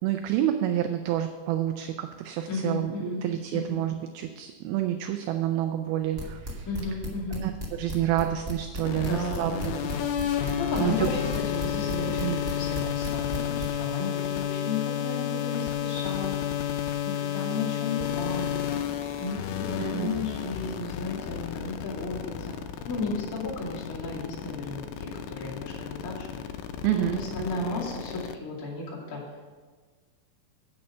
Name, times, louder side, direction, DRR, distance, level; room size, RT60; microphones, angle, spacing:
voice 1, 0.0-6.7 7.4-7.5 7.8-9.8 10.2-10.6 10.8-11.1 12.1-12.4 19.8-20.3 26.8-27.2, right 12 dB, 80° right, 7 dB, 2.3 m, -28 dB
voice 2, 2.5-3.2 3.5-3.8 6.6-7.4 9.0-10.0 10.5-16.4 17.0-18.8 19.2-26.4 26.9-29.2, left 3 dB, 25° left, -5 dB, 2.4 m, -34 dB
sound 1, 6.2-13.7, right 2 dB, 60° right, 0.7 m, -34 dB
sound 2, 8.9-28.3, left 10 dB, 85° left, 1.9 m, -31 dB
8.9 x 8.4 x 5.5 m, 1.5 s
omnidirectional pair, 4.6 m